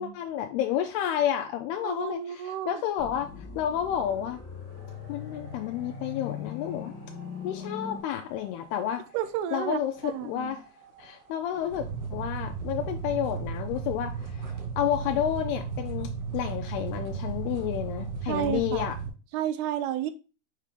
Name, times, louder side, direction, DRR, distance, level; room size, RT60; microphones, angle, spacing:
voice 1, 0.0-4.4 5.1-6.9 7.4-9.0 9.5-10.7 11.0-19.0, left 10 dB, 85° left, 2.6 m, -30 dB
voice 2, 1.8-2.8 9.1-10.6 18.3-18.9 19.3-20.1, right 11 dB, 85° right, 2.7 m, -31 dB
sound 1, 3.0-8.0, left 6 dB, 65° left, 1.1 m, -40 dB
sound 2, 4.7-19.1, right 5 dB, 55° right, 3.4 m, -37 dB
6.5 x 4.9 x 3.6 m
omnidirectional pair, 4.6 m